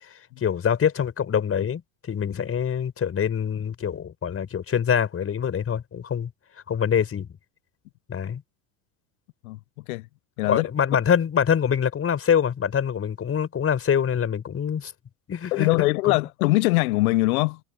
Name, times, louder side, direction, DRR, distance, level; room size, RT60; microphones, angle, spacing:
voice 1, 0.4-6.3 6.7-7.3 8.1-8.4 10.4-14.9 15.3-16.2, left 8 dB, 30° left, 5.4 m, -25 dB
voice 2, 15.5-17.6, left 21 dB, 65° left, 1.2 m, -22 dB
hypercardioid pair, 90°, 46 cm